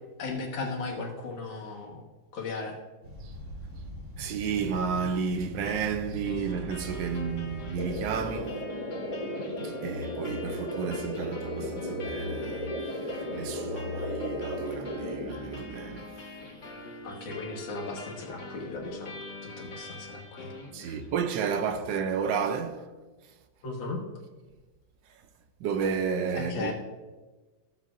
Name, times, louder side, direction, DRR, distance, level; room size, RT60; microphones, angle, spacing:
voice 1, 0.2-2.0 2.3-2.8 17.0-20.5 20.9-21.0 23.6-24.0 26.3-26.7, left 3 dB, 85° left, 2.2 m, -36 dB
sound 1, 3.0-8.3, right 1 dB, 45° right, 3.1 m, -41 dB
voice 2, 4.2-8.6 9.6-16.1 20.7-22.9 25.6-26.7, right 6 dB, 80° right, 1.3 m, -32 dB
sound 2, 6.2-21.2, left 2 dB, 60° left, 2.3 m, -44 dB
sound 3, 7.8-15.3, left 1 dB, 20° left, 2.1 m, -35 dB
15.0 x 7.5 x 2.5 m
omnidirectional pair, 2.0 m